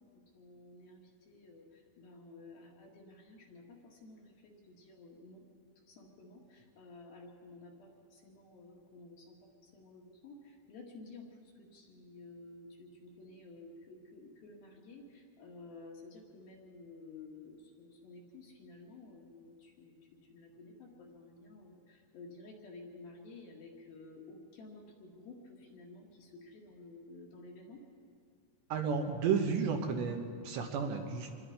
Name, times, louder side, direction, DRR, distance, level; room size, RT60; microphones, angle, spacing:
voice 1, 0.0-5.4 5.9-20.0 20.3-27.8, left 3 dB, 60° left, -1 dB, 3.4 m, -53 dB
voice 2, 28.7-31.4, right 6 dB, 70° right, 3 dB, 3.3 m, -32 dB
26.5 x 21.5 x 5.0 m, 2.2 s
omnidirectional pair, 5.6 m